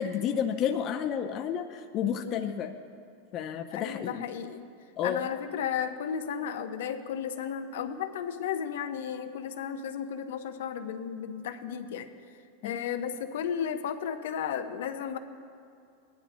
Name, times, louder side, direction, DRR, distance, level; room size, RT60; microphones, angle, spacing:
voice 1, 0.0-2.8 3.3-4.3 5.0-5.3 12.6-12.8, left 8 dB, 40° left, 5 dB, 0.6 m, -31 dB
voice 2, 3.7-4.7 5.0-12.1 12.6-15.2, left 8 dB, 80° left, 8 dB, 0.7 m, -34 dB
19.5 x 11.0 x 2.2 m, 2.5 s
supercardioid pair, 120°, 0 cm